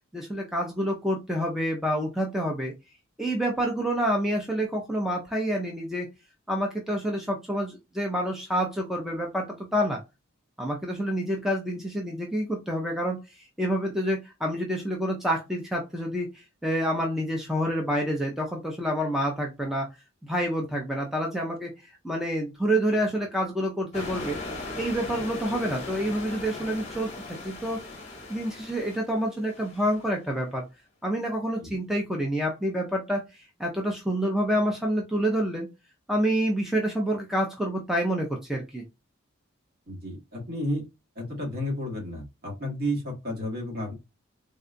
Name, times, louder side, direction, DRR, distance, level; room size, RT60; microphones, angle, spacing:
voice 1, 0.1-2.7 3.2-6.1 6.5-10.0 10.6-13.2 13.6-19.9 20.2-21.7 22.0-24.4 24.8-27.1 27.4-27.8 28.3-30.6 31.0-35.7 36.1-38.8, equal, ahead, 0 dB, 0.5 m, -28 dB
sound 1, 23.9-30.1, left 2 dB, 30° left, 0.9 m, -38 dB
voice 2, 39.9-40.8 41.1-43.9, equal, 45° right, -1 dB, 1.4 m, -32 dB
3.7 x 2.3 x 2.5 m, 0.24 s
head